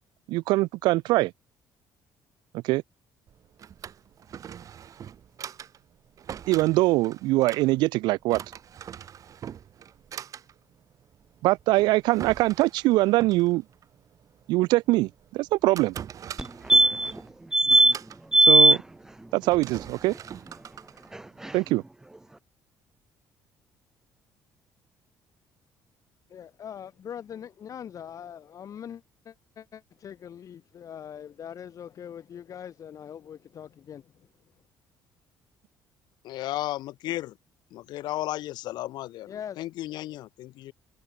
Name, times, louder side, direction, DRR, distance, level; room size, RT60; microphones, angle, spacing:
voice 1, 0.3-1.3 2.6-2.8 6.5-8.4 11.4-13.6 14.5-15.9 18.5-18.8 19.3-20.1 21.5-21.8, right 19 dB, 90° right, 1.1 m, -23 dB
Drawer open or close, 3.3-21.8, right 9 dB, 50° right, 7.5 m, -44 dB
sound 1, 16.4-16.5 16.7-17.2 17.5-17.9 18.3-18.8 21.1-21.2 21.4-21.5, right 1 dB, 5° right, 0.3 m, -17 dB
voice 2, 26.3-34.1 39.3-39.6, left 9 dB, 50° left, 3.6 m, -42 dB
voice 3, 36.2-37.4 37.7-40.7, left 15 dB, 75° left, 2.3 m, -34 dB
cardioid pair, 115°, 7 cm